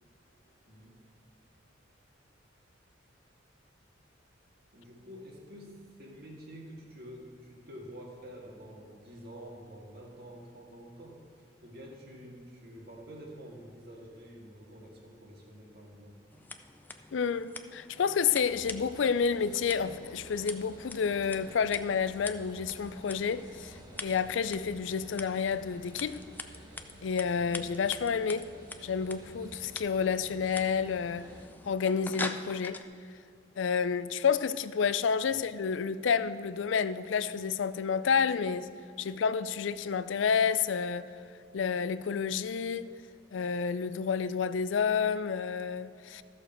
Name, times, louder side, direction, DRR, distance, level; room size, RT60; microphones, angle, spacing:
voice 1, 0.7-1.0 4.7-11.2 11.6-16.2 35.3-35.4, equal, 55° right, 2.0 m, -48 dB
Scissors, 16.3-32.8, left 3 dB, 10° left, 0.4 m, -45 dB
voice 2, 17.1-23.7 24.0-26.2 27.0-28.5 28.8-31.3 31.7-32.8 33.6-38.7 39.0-41.1 41.5-42.9 43.3-46.2, left 6 dB, 75° left, 0.4 m, -29 dB
sound 1, 18.4-31.5, right 1 dB, 20° right, 1.2 m, -52 dB
14.0 x 6.6 x 4.5 m
head